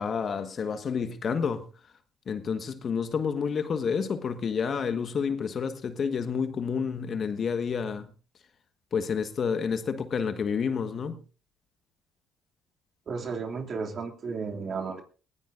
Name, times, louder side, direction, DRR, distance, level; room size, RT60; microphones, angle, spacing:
voice 1, 0.0-1.7 2.2-8.1 8.9-11.2, left 6 dB, 45° left, 1.5 m, -29 dB
voice 2, 13.1-15.0, right 5 dB, 50° right, 2.7 m, -33 dB
20.0 x 16.0 x 2.6 m
hypercardioid pair, 60°, 0 cm